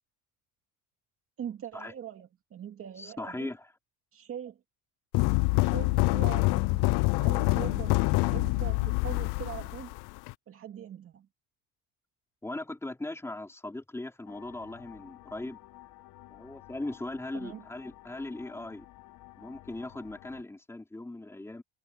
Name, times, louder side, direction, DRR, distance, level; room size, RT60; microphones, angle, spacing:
voice 1, 1.4-3.5 4.1-4.6 5.6-9.9 10.5-11.3 17.3-17.6, right 9 dB, 35° right, 2.4 m, -42 dB
voice 2, 3.0-3.7 12.4-15.6 16.3-18.9 19.4-21.6, left 2 dB, 5° left, 3.8 m, -39 dB
sound 1, 5.1-10.3, left 26 dB, 75° left, 0.6 m, -26 dB
sound 2, 14.3-20.4, left 16 dB, 60° left, 3.4 m, -52 dB
cardioid pair, 175°, 40 cm